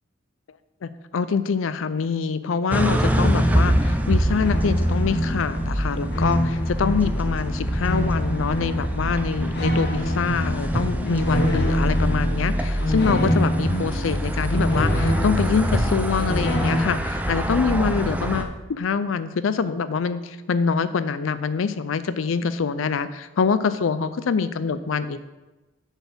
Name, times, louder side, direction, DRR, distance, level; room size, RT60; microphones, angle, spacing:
voice 1, 0.8-25.2, left 5 dB, 85° left, 13 dB, 0.5 m, -25 dB
sound 1, 2.7-18.4, equal, 10° right, 0.5 m, -25 dB
sound 2, 3.0-16.8, equal, 60° left, 1.1 m, -26 dB
8.1 x 4.1 x 6.9 m, 1.1 s
head